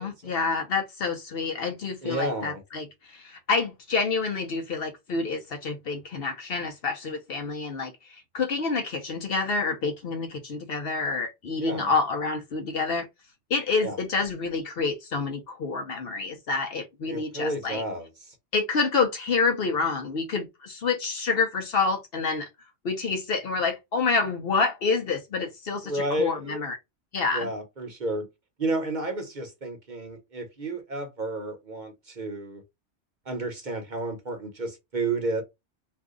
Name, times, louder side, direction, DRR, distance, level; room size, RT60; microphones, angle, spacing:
voice 1, 0.0-13.1 13.5-17.8 18.5-22.5 22.8-26.8 27.1-27.5, left 4 dB, 60° left, 0.8 m, -28 dB
voice 2, 2.0-2.6 11.6-11.9 13.8-14.0 17.1-18.4 25.8-26.6 27.3-28.3 28.6-32.6 33.3-35.4, right 2 dB, 45° right, 0.8 m, -31 dB
2.6 x 2.4 x 3.6 m
omnidirectional pair, 1.2 m